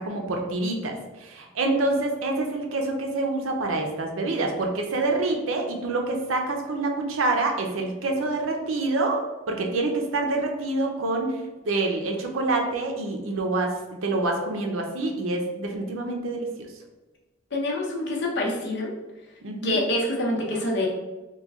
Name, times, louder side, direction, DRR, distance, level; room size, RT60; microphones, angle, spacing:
voice 1, 0.0-11.4 11.7-16.7 19.4-19.8, right 2 dB, 80° right, 2 dB, 0.6 m, -27 dB
voice 2, 17.5-18.9 19.6-20.9, left 1 dB, 60° left, -2 dB, 0.8 m, -26 dB
3.1 x 2.2 x 3.5 m, 1.1 s
head